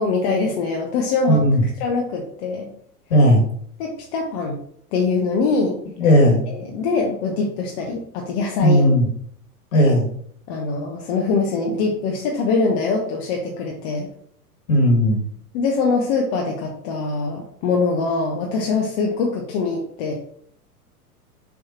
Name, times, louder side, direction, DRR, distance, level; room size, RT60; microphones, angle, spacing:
voice 1, 0.0-1.4 1.8-2.7 3.8-4.6 4.9-5.8 6.5-8.9 10.5-14.1 15.5-20.1, left 4 dB, 45° left, 0 dB, 1.2 m, -23 dB
voice 2, 1.3-1.6 3.1-3.4 6.0-6.4 8.6-9.1 9.7-10.1 14.7-15.2, equal, 60° left, 0 dB, 2.4 m, -15 dB
6.9 x 3.4 x 4.3 m, 0.63 s
figure-of-eight pair, 95°, 46 cm